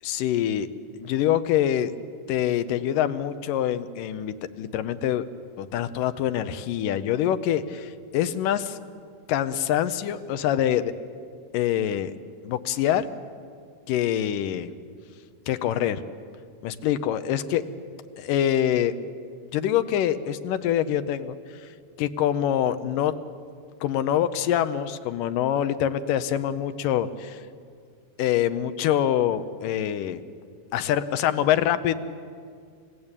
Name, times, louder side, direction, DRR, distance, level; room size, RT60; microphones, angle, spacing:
voice 1, 0.0-0.7 1.0-1.9 2.3-5.3 5.6-8.8 9.3-10.9 11.5-12.1 12.4-13.1 13.9-14.7 15.5-16.0 16.6-17.6 18.2-18.9 19.5-21.4 22.0-23.1 23.8-27.4 28.2-30.2 30.7-31.9, left 10 dB, 90° left, 11 dB, 2.5 m, -25 dB
28.0 x 16.0 x 9.0 m, 2.2 s
omnidirectional pair, 3.7 m